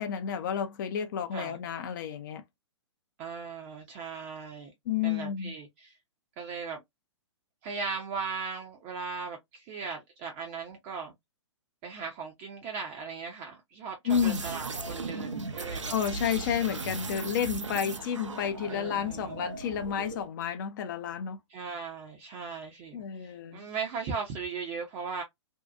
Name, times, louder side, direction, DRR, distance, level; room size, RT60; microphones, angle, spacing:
voice 1, 0.0-2.4 4.9-5.5 14.1-14.5 15.9-21.4 22.9-23.6, left 8 dB, 40° left, 0.4 m, -31 dB
voice 2, 3.2-4.7 5.0-6.0 6.4-6.8 7.6-11.1 11.8-15.9 18.7-19.5 21.5-25.2, right 5 dB, 25° right, 0.5 m, -38 dB
sound 1, 14.1-20.3, right 3 dB, 75° right, 0.6 m, -37 dB
2.7 x 2.2 x 2.2 m
figure-of-eight pair, 115°, 16 cm